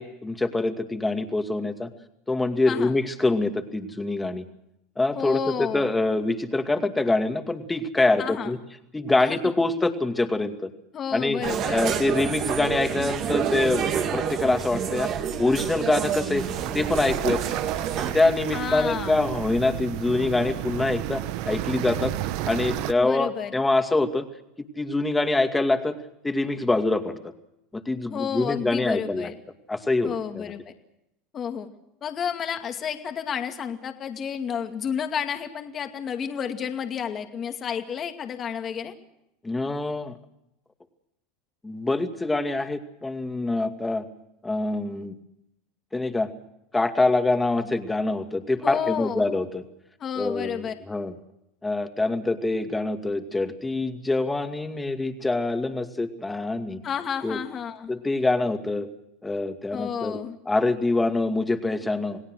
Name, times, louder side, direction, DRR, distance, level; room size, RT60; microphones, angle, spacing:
voice 1, 0.0-1.9 2.3-4.4 5.0-8.6 8.9-10.7 11.1-11.4 11.7-15.1 15.4-16.5 16.7-17.4 18.1-22.1 22.5-24.2 24.8-26.0 26.2-27.2 27.7-29.3 29.7-30.4 39.4-40.2 41.6-44.0 44.4-45.1 45.9-46.3 46.7-49.6 50.2-50.6 50.9-51.1 51.6-56.8 57.2-57.4 57.9-58.9 59.2-60.2 60.5-62.2, left 2 dB, 10° left, 6 dB, 2.3 m, -25 dB
voice 2, 5.1-5.9 8.2-8.6 9.2-9.4 10.9-11.9 18.5-19.2 23.0-23.5 28.1-29.3 30.0-30.7 31.3-31.7 32.0-38.9 48.6-49.3 50.0-50.7 56.8-57.9 59.7-60.4, left 8 dB, 35° left, 5 dB, 2.3 m, -31 dB
sound 1, 11.4-18.1, right 8 dB, 50° right, 3.0 m, -28 dB
sound 2, 16.4-22.9, right 14 dB, 65° right, 1.1 m, -32 dB
28.5 x 18.0 x 6.4 m, 0.83 s
supercardioid pair, 110°, 0 cm